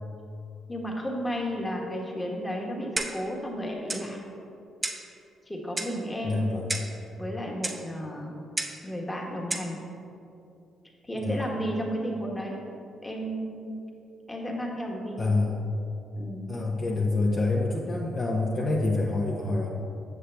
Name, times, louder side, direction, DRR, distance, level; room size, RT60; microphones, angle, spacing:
voice 1, 0.7-4.2 5.5-6.4 7.2-8.3 8.8-9.8 11.0-12.6 13.0-13.8 14.3-15.2 16.2-16.5, equal, 10° left, -1 dB, 1.3 m, -33 dB
Clock, 3.0-3.3 3.9-4.1 4.8-5.1 5.8-6.0 6.7-7.0 7.6-7.8 8.6-8.8 9.5-9.7, right 2 dB, 25° right, 0.7 m, -32 dB
voice 2, 6.2-6.7 11.2-11.4 15.2-15.7 16.5-19.7, left 2 dB, 35° left, -3 dB, 0.8 m, -27 dB
7.4 x 6.6 x 3.3 m, 2.7 s
cardioid pair, 90°, 0 cm